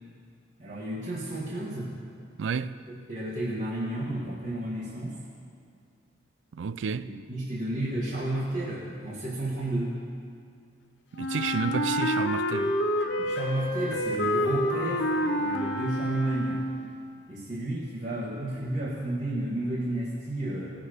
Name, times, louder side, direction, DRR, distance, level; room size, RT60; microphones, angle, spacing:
voice 1, 0.6-1.9 2.9-5.2 7.0-10.0 13.2-16.6 17.3-20.7, right 1 dB, 45° right, 1.6 m, -32 dB
voice 2, 2.4-2.7 6.6-7.1 11.2-12.7, right 6 dB, 80° right, 0.4 m, -30 dB
Wind instrument woodwind instrument, 11.2-17.0, equal, 65° left, 0.8 m, -28 dB
18.0 x 6.4 x 5.0 m
head